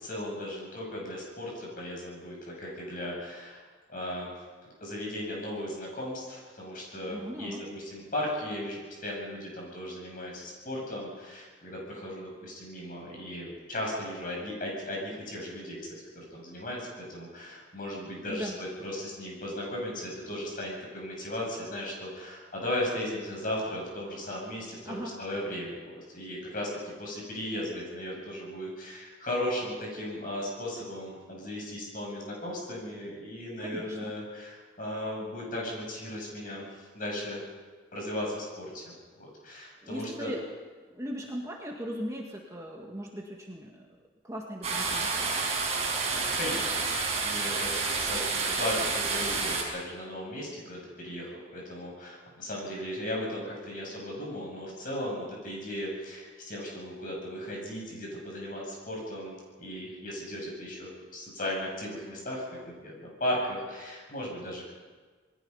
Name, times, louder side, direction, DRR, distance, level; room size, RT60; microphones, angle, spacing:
voice 1, 0.0-3.6 3.9-4.3 4.8-15.8 16.1-37.4 37.9-40.3 46.2-62.5 62.8-64.7, left 1 dB, 45° left, -2 dB, 7.8 m, -36 dB
voice 2, 7.0-7.6 18.2-18.6 24.9-25.1 33.6-34.2 39.8-40.4 40.9-43.8 44.2-45.3, equal, 15° right, -1 dB, 1.9 m, -38 dB
sound 1, 44.6-49.6, right 4 dB, 35° right, 5.3 m, -29 dB
28.5 x 21.0 x 5.6 m, 1.4 s
head